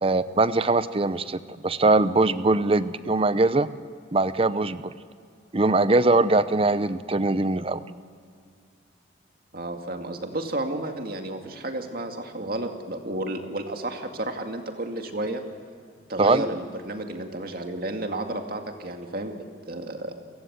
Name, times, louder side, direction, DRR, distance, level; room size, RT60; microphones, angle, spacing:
voice 1, 0.0-3.7 4.1-4.9 5.5-8.0 16.2-16.4, right 2 dB, 30° right, 14 dB, 0.7 m, -22 dB
voice 2, 9.5-15.4 16.1-20.2, right 1 dB, 55° right, 4 dB, 2.3 m, -32 dB
29.5 x 16.0 x 8.1 m, 2.3 s
head